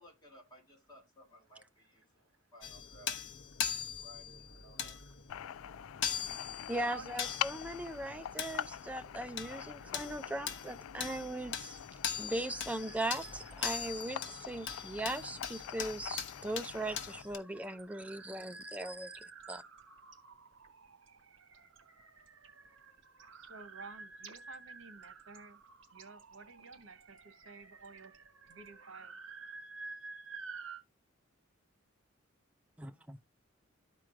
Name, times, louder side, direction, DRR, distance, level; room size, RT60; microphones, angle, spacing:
voice 1, 0.0-3.1 3.9-5.0, equal, 20° left, 2.8 m, -58 dB
sound 1, 2.6-17.4, left 8 dB, 65° left, 0.8 m, -41 dB
voice 2, 4.9-5.6 6.7-7.2 12.9-13.0 13.2-13.3 13.8-15.5 16.3-16.5 16.9-17.0 17.6-30.8, right 4 dB, 90° right, 1.0 m, -51 dB
sound 2, 5.3-17.2, left 10 dB, 90° left, 0.3 m, -45 dB
voice 3, 6.7-11.8 12.2-19.1 19.5-19.6 32.8-33.2, right 1 dB, 5° right, 0.4 m, -39 dB
sound 3, 11.8-28.8, right 6 dB, 65° right, 1.4 m, -61 dB
13.5 x 4.5 x 2.4 m
head